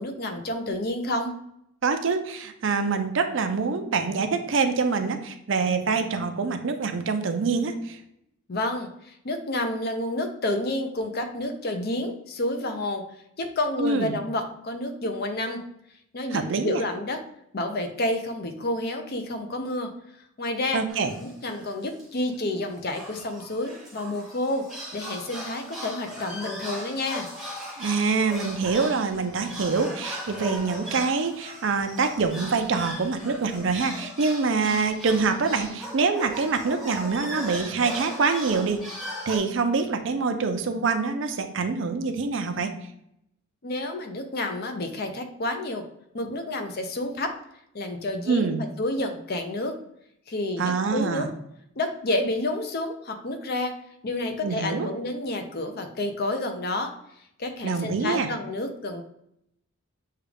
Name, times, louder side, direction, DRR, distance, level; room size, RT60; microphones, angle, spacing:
voice 1, 0.0-1.3 8.5-13.0 13.4-15.6 16.1-17.2 17.5-19.9 20.4-20.8 21.2-24.7 24.9-27.3 43.6-45.8 46.1-47.3 47.7-48.5 48.8-49.7 50.3-51.3 51.8-53.7 54.0-56.9 57.4-59.0, left 1 dB, 45° left, 5 dB, 0.6 m, -29 dB
voice 2, 1.8-8.0 13.8-14.2 16.3-16.8 20.7-21.1 27.8-38.9 39.3-42.7 48.3-48.6 50.6-51.3 54.4-54.9 57.6-58.3, right 4 dB, 60° right, 7 dB, 0.5 m, -25 dB
sound 1, 20.9-21.7 22.0-22.1 22.3-22.5 22.9-39.4, equal, ahead, 0.9 m, -38 dB
6.5 x 2.4 x 3.4 m, 0.77 s
head